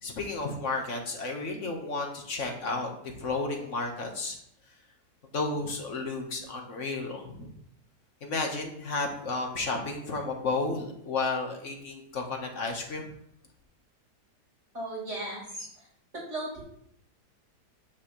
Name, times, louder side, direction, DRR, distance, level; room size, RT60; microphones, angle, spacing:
voice 1, 0.0-4.4 5.3-7.5 8.2-13.1, left 3 dB, 50° left, 2 dB, 1.7 m, -32 dB
voice 2, 14.7-15.7 16.3-16.6, right 2 dB, 40° right, -5 dB, 5.0 m, -35 dB
9.5 x 8.8 x 3.3 m, 0.71 s
omnidirectional pair, 1.8 m